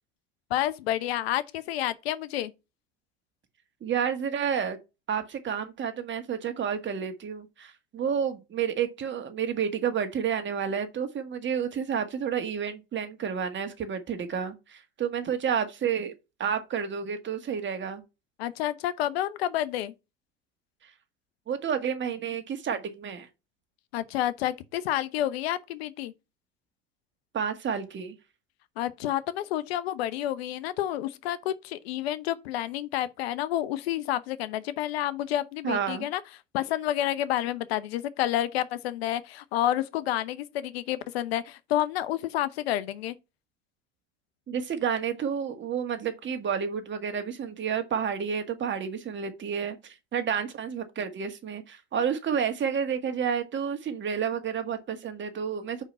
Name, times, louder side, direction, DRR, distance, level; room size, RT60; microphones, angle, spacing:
voice 1, 0.5-2.5 18.4-19.9 23.9-26.1 28.8-36.2 36.5-43.2, left 12 dB, 80° left, 0.8 m, -29 dB
voice 2, 3.8-4.8 5.1-16.1 16.4-18.0 21.5-23.3 27.3-28.2 35.6-36.1 44.5-55.8, right 7 dB, 40° right, 1.8 m, -30 dB
5.4 x 4.9 x 5.6 m
hypercardioid pair, 85°, 30 cm